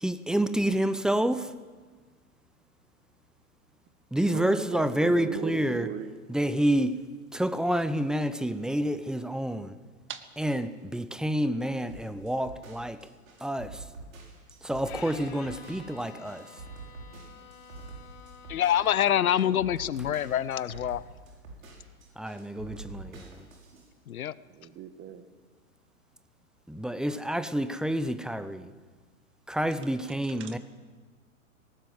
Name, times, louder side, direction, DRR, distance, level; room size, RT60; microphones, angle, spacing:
voice 1, 0.0-1.5 4.1-5.9 6.3-6.9 7.3-9.7 10.4-13.0 13.4-13.8 14.6-16.5 22.2-23.4 26.7-28.7 29.5-30.6, right 1 dB, ahead, 0.6 m, -28 dB
voice 2, 4.3-6.1 10.1-10.2 24.5-25.3 30.4-30.6, right 8 dB, 25° right, 1.9 m, -37 dB
sound 1, 11.9-23.9, right 3 dB, 70° right, 6.2 m, -46 dB
Bowed string instrument, 14.8-19.5, left 6 dB, 45° left, 4.1 m, -49 dB
voice 3, 18.5-21.0 24.1-24.3, left 10 dB, 75° left, 0.9 m, -26 dB
19.0 x 18.0 x 7.9 m
hypercardioid pair, 115°, 43 cm